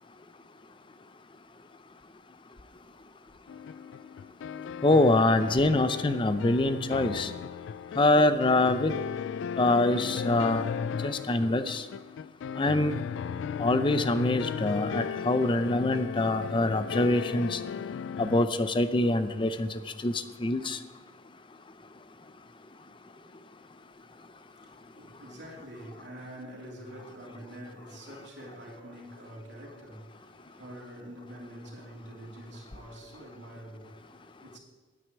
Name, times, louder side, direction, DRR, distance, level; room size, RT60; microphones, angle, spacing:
sound 1, 3.5-18.5, left 7 dB, 75° left, 0.3 m, -36 dB
voice 1, 4.8-7.3 8.0-8.9 9.6-10.6 11.0-11.8 12.6-13.0 13.6-17.6 18.2-19.7 20.0-20.8, left 2 dB, 25° left, 0.5 m, -24 dB
voice 2, 24.5-34.6, right 1 dB, 65° right, 3.0 m, -46 dB
9.6 x 9.3 x 8.2 m
head